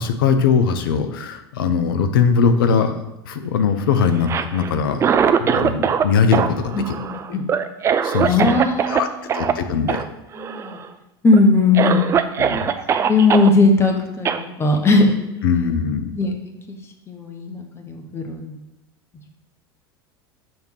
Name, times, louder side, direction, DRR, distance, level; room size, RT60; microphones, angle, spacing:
voice 1, 0.0-3.0 3.3-5.0 5.4-6.8 8.0-8.5 8.9-9.1 9.3-10.0 12.4-12.7 15.4-16.1, left 6 dB, 60° left, 8 dB, 0.6 m, -20 dB
Cough, 4.1-6.1 6.3-9.0 9.3-9.5 9.9-10.0 10.3-10.9 11.3-11.4 11.7-13.5 14.2-14.4, right 7 dB, 20° right, 0.3 m, -21 dB
voice 2, 6.7-7.4 8.2-10.0 10.4-10.8 11.2-12.1 12.6-12.7 13.0-15.1 16.1-16.3 16.7-16.8 17.1-18.6, left 3 dB, 20° left, 4 dB, 0.9 m, -19 dB
6.5 x 3.5 x 4.5 m, 0.91 s
figure-of-eight pair, 75°, 13 cm